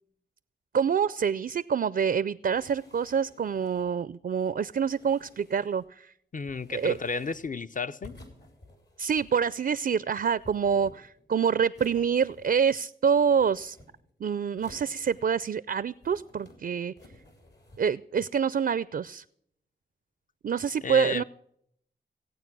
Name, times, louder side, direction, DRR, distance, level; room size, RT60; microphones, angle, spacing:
voice 1, 0.7-6.1 6.7-7.0 9.0-13.8 14.2-16.9 17.8-19.2 20.4-21.2, right 7 dB, 55° right, 0.4 m, -26 dB
sound 1, 2.5-4.0 4.7-5.9 6.4-7.6 8.0-9.5 10.0-11.3 11.7-12.8 13.1-14.1 14.6-15.5 15.9-16.6 17.0-17.9, left 1 dB, 65° left, 3.6 m, -54 dB
voice 2, 6.3-8.2 20.8-21.2, left 4 dB, 45° left, 0.6 m, -32 dB
17.0 x 8.8 x 6.1 m
cardioid pair, 45°, 19 cm